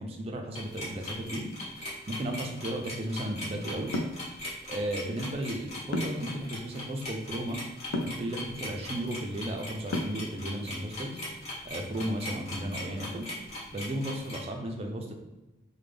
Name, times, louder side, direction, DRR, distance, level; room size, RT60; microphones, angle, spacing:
voice 1, 0.0-1.5 2.1-3.9 4.7-7.6 8.0-11.2 11.6-13.3 13.7-15.1, right 1 dB, 30° right, 3 dB, 0.4 m, -34 dB
sound 1, 0.6-14.4, left 1 dB, 35° left, 1.1 m, -39 dB
sound 2, 3.9-4.2 5.9-6.3 7.9-8.2 9.9-10.3, left 1 dB, 80° left, 0.4 m, -31 dB
3.4 x 2.1 x 3.3 m, 1.1 s
head